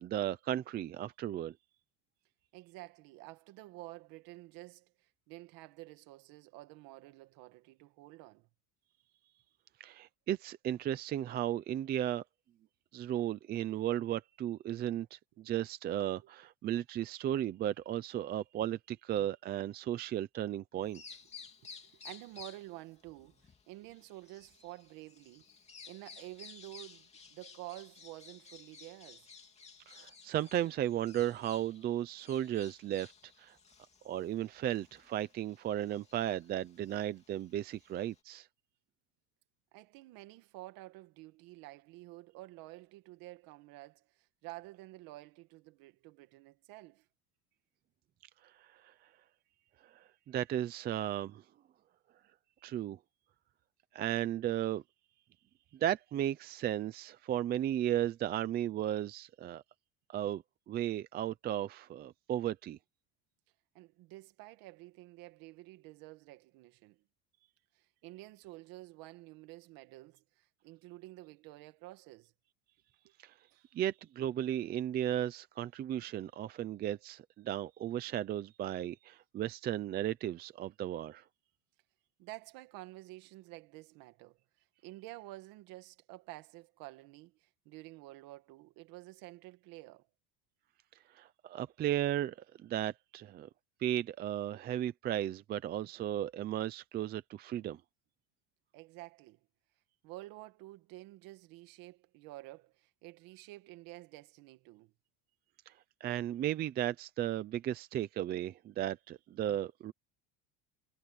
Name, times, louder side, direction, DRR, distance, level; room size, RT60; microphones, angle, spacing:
voice 1, 0.0-1.5 9.8-12.2 12.9-21.0 29.9-33.1 33.4-33.6 34.0-38.5 48.4-48.9 49.8-51.4 52.6-53.0 53.9-54.8 55.7-59.6 60.1-62.8 73.2-73.3 73.7-81.2 91.1-93.5 93.8-97.8 105.7-105.8 106.0-109.9, right 11 dB, 25° right, 0.5 m, -35 dB
voice 2, 2.5-8.5 16.2-16.3 21.8-25.5 25.9-29.3 39.7-47.1 63.7-67.0 67.7-72.3 73.5-73.6 82.2-84.4 84.8-90.1 98.7-99.4 100.0-104.9, right 19 dB, 60° right, 2.1 m, -50 dB
Bird vocalization bird call bird song, 20.8-38.2, left 5 dB, 15° left, 2.8 m, -56 dB
cardioid pair, 175°, 39 cm